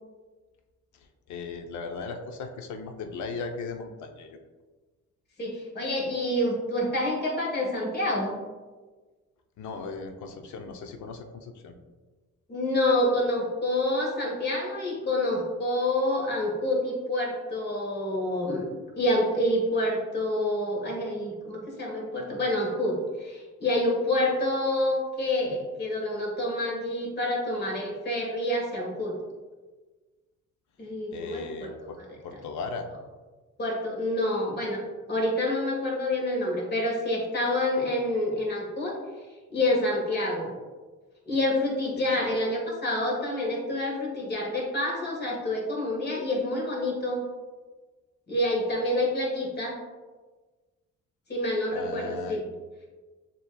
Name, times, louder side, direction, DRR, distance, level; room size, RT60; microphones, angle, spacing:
voice 1, 0.9-4.4 9.6-11.8 31.1-32.0 32.2-32.9 42.0-42.2 51.7-52.4, left 4 dB, 70° left, 5 dB, 0.6 m, -37 dB
voice 2, 5.4-8.4 12.5-18.6 18.9-29.2 30.8-32.2 33.6-34.8 35.1-39.0 39.5-40.5 41.2-47.3 48.3-49.8 51.3-52.4, left 1 dB, 35° left, -2 dB, 1.4 m, -27 dB
7.0 x 3.0 x 2.2 m, 1.3 s
cardioid pair, 90°, 30 cm